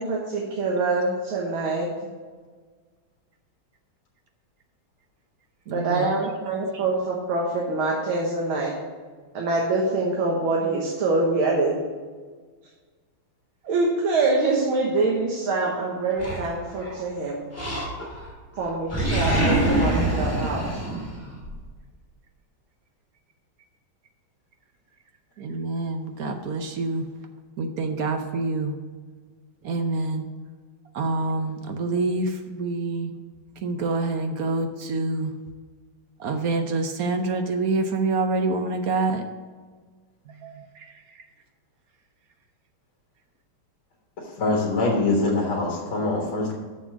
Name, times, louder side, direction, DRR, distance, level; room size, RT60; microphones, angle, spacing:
voice 1, 0.0-1.9 5.7-8.7 9.3-11.8 13.6-17.4 18.6-20.8 31.9-32.0, right 3 dB, 80° right, -2 dB, 2.2 m, -25 dB
voice 2, 5.7-6.3 6.7-6.8 25.4-27.1 27.6-28.8 29.6-30.2 30.9-33.1 33.6-35.3 36.2-39.2 40.3-41.2, right 3 dB, 65° right, 6 dB, 1.0 m, -27 dB
Animal, 16.2-17.0 17.5-18.3 18.6-21.5, right 1 dB, 5° left, 2.3 m, -25 dB
voice 3, 44.4-46.5, left 2 dB, 80° left, -2 dB, 2.4 m, -23 dB
7.2 x 6.9 x 6.0 m, 1.5 s
omnidirectional pair, 2.2 m